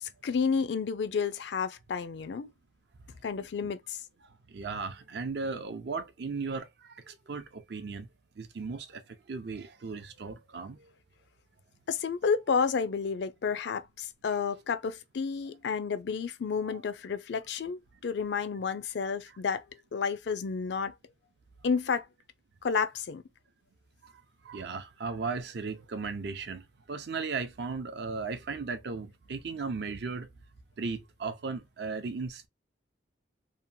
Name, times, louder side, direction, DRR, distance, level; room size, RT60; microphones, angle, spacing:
voice 1, 0.0-2.5 3.2-4.0 11.9-19.6 19.9-20.9 21.6-22.1 22.6-23.2, left 5 dB, 65° left, 0.4 m, -31 dB
voice 2, 4.5-8.1 8.4-9.0 9.3-10.9 16.6-16.8 24.0-24.1 24.4-30.3 30.8-32.5, right 4 dB, 65° right, 0.5 m, -36 dB
2.8 x 2.2 x 2.6 m
head